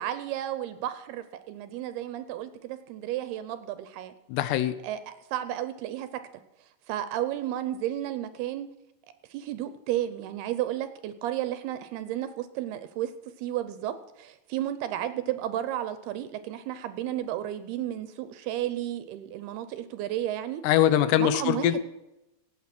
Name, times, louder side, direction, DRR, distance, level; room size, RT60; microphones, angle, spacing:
voice 1, 0.0-4.1 4.8-6.2 6.9-8.7 9.3-13.1 13.4-20.6 21.2-21.8, right 12 dB, 75° right, 12 dB, 2.5 m, -32 dB
voice 2, 4.3-4.8 20.6-21.8, left 11 dB, 80° left, 13 dB, 2.8 m, -22 dB
17.0 x 8.6 x 6.0 m, 0.94 s
omnidirectional pair, 5.0 m